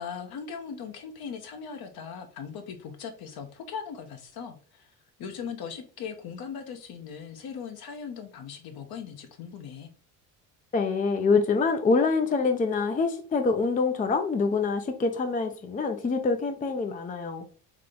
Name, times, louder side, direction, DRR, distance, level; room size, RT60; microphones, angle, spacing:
voice 1, 0.0-4.9 5.2-9.9, left 6 dB, 55° left, 6 dB, 1.1 m, -39 dB
voice 2, 10.7-17.5, left 4 dB, 20° left, 7 dB, 0.6 m, -25 dB
3.7 x 3.3 x 3.7 m, 0.41 s
hypercardioid pair, 65°, 45 cm